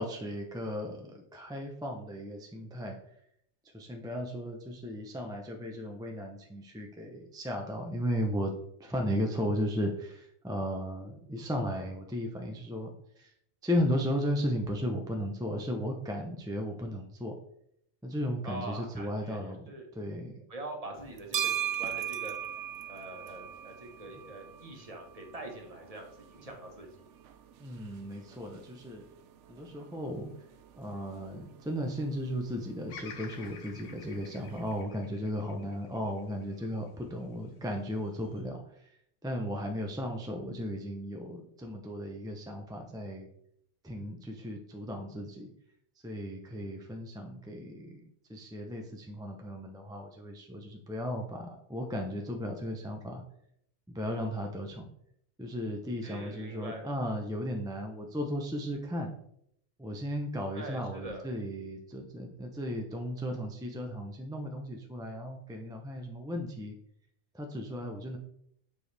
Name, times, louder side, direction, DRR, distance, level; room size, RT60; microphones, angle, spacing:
voice 1, 0.0-3.0 3.7-8.5 8.8-13.3 13.6-17.3 18.0-20.4 27.6-29.0 29.5-30.3 30.8-38.9 39.2-43.3 43.8-45.5 46.0-53.2 53.9-54.9 55.4-59.1 59.8-66.8 67.3-68.2, equal, 5° right, 2 dB, 0.6 m, -35 dB
voice 2, 18.4-19.9 20.5-22.3 22.9-27.0 56.0-56.8 60.5-61.2, right 2 dB, 30° right, 1 dB, 1.3 m, -43 dB
sound 1, 20.9-34.8, right 10 dB, 85° right, 0.9 m, -41 dB
Bird vocalization bird call bird song, 32.9-37.1 37.7-38.4, left 5 dB, 85° left, 1.2 m, -50 dB
7.8 x 4.7 x 3.3 m, 0.72 s
omnidirectional pair, 1.2 m